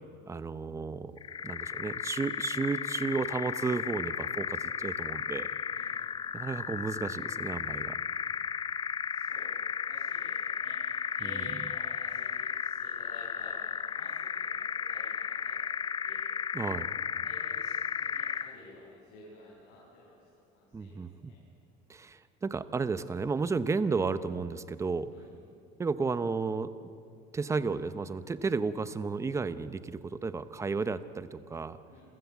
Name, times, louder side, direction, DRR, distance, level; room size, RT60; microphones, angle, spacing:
voice 1, 0.3-1.2 1.4-5.5 6.3-8.0 11.2-11.5 16.5-16.9 20.7-21.3 21.9-25.1 25.8-26.7 27.3-31.8, right 4 dB, 15° right, 13 dB, 0.7 m, -33 dB
sound 1, 1.2-18.6, left 7 dB, 25° left, 0.5 m, -34 dB
voice 2, 5.7-6.1 9.1-10.7 11.1-16.2 17.0-20.2 20.5-21.4 25.1-25.4 31.9-32.0, left 2 dB, 80° left, -6 dB, 7.1 m, -53 dB
28.0 x 15.5 x 8.2 m, 2.5 s
cardioid pair, 145°, 20 cm